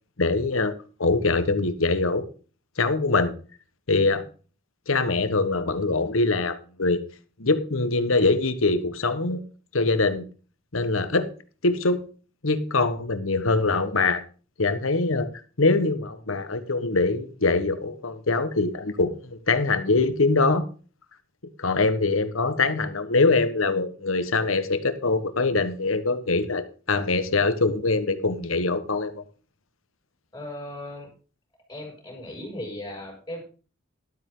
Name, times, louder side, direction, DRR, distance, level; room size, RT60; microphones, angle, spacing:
voice 1, 0.2-0.7 1.0-2.3 2.8-3.3 3.9-4.2 4.9-7.0 7.4-9.4 9.7-10.2 10.7-11.3 11.6-12.0 12.4-14.2 14.6-15.3 15.6-20.6 21.6-29.2, left 3 dB, 85° left, 11 dB, 1.3 m, -23 dB
voice 2, 30.3-31.1 31.7-33.4, left 1 dB, 20° left, 0 dB, 6.5 m, -37 dB
12.5 x 12.0 x 3.8 m, 0.37 s
head